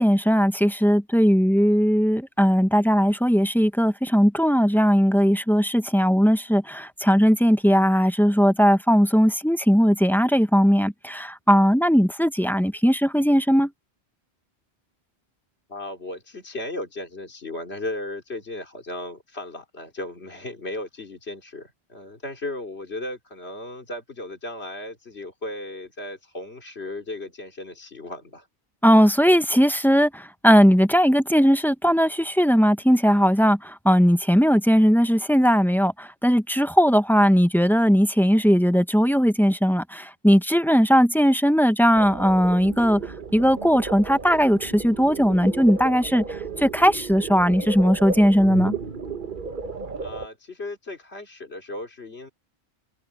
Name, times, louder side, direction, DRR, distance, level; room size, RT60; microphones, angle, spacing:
voice 1, 0.0-13.7 28.8-43.0 43.3-46.2 46.6-48.7, equal, ahead, 0.6 m, -19 dB
voice 2, 15.7-28.5 50.0-52.3, left 1 dB, 75° left, 3.5 m, -35 dB
sound 1, 42.0-50.3, right 4 dB, 50° right, 1.3 m, -33 dB
omnidirectional pair, 1.1 m